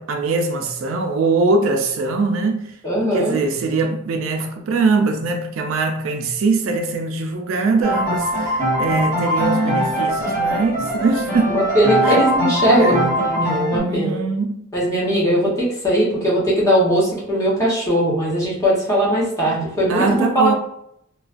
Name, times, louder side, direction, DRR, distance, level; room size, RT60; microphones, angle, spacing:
voice 1, 0.0-11.7 12.0-12.2 12.8-13.0 13.8-14.7 19.9-20.5, right 3 dB, 70° right, 0.4 m, -22 dB
voice 2, 2.8-3.3 11.4-14.2 14.7-20.5, equal, 15° left, 0.9 m, -19 dB
sound 1, 7.8-13.8, right 1 dB, 50° left, 1.3 m, -21 dB
2.3 x 2.2 x 2.4 m
head